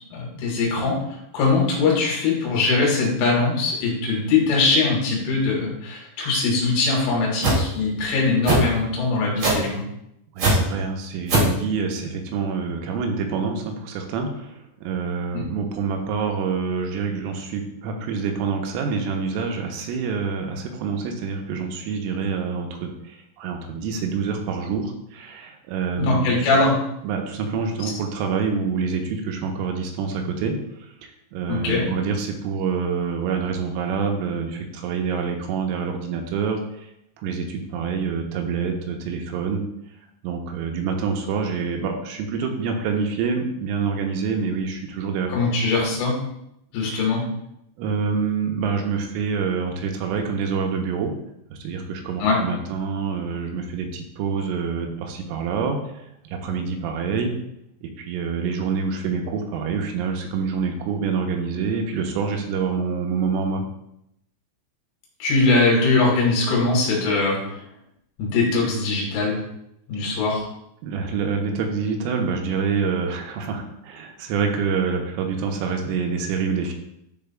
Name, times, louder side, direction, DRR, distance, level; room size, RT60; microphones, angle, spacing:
voice 1, 0.1-1.0 1.3-9.8 15.3-15.5 26.0-26.8 31.5-31.9 45.3-46.2 46.7-47.2 52.2-52.4 65.2-67.6 68.2-69.4 69.9-70.4, left 3 dB, 75° left, -2 dB, 3.8 m, -21 dB
sound 1, 7.4-7.6 8.4-8.6 9.4-9.7 10.4-10.5 11.3-11.5, right 3 dB, 60° right, 1.7 m, -18 dB
voice 2, 10.4-26.3 27.0-36.6 37.2-39.6 40.2-45.3 46.9-47.0 47.8-51.1 51.5-55.8 56.3-57.4 57.8-63.6 70.8-76.7, right 5 dB, 85° right, 3 dB, 3.2 m, -26 dB
10.5 x 4.0 x 2.2 m, 0.80 s
omnidirectional pair, 5.9 m